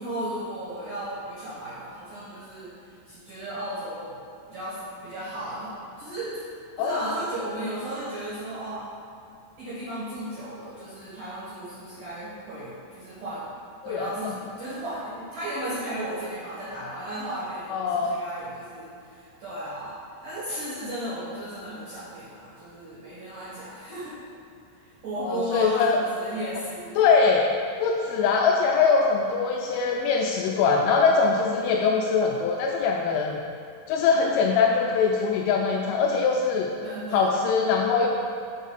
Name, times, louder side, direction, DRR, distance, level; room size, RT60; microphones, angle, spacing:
voice 1, 0.0-4.1 4.5-6.3 6.8-8.9 9.6-13.5 13.8-19.9 20.2-24.1 24.8-27.0 36.8-37.4, right 1 dB, 60° right, -11 dB, 2.3 m, -35 dB
voice 2, 13.8-14.3 17.7-18.1 25.2-26.0 27.0-27.5 27.8-33.4 33.9-36.7 37.1-38.1, left 5 dB, 85° left, 0 dB, 2.8 m, -22 dB
7.6 x 3.6 x 5.6 m, 2.5 s
omnidirectional pair, 5.9 m